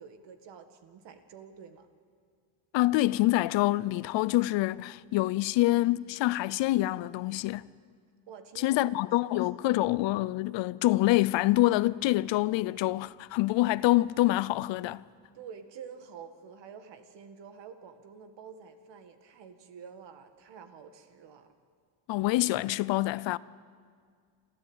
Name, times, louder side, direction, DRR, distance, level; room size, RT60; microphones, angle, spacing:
voice 1, 0.0-1.9 8.3-8.8 9.3-9.7 15.3-21.5, right 7 dB, 75° right, 2.1 m, -48 dB
voice 2, 2.7-7.7 8.6-15.0 22.1-23.4, left 17 dB, 80° left, 0.7 m, -26 dB
28.5 x 13.5 x 9.0 m
cardioid pair, 125°, 43 cm